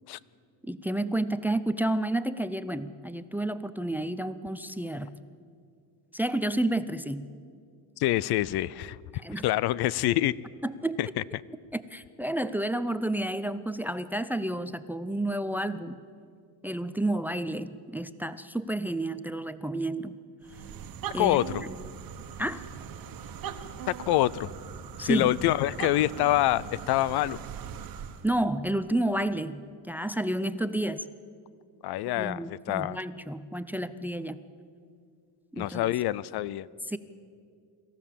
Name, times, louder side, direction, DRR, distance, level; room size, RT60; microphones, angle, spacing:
voice 1, 0.7-5.1 6.1-7.3 9.1-9.4 10.6-11.0 11.7-16.0 16.6-20.2 21.1-21.8 22.4-22.7 25.0-25.3 28.2-29.6 29.9-31.0 32.2-34.4 35.5-35.9 36.9-37.0, right 1 dB, 5° right, 14 dB, 0.5 m, -30 dB
voice 2, 8.0-9.0 9.4-10.3 11.0-11.1 21.2-21.6 23.9-24.5 25.0-27.4 31.8-33.0 35.6-36.7, left 15 dB, 65° left, 21 dB, 0.6 m, -26 dB
sound 1, 20.4-28.3, right 7 dB, 55° right, 1.4 m, -40 dB
25.5 x 14.5 x 7.4 m, 2.3 s
cardioid pair, 120°, 43 cm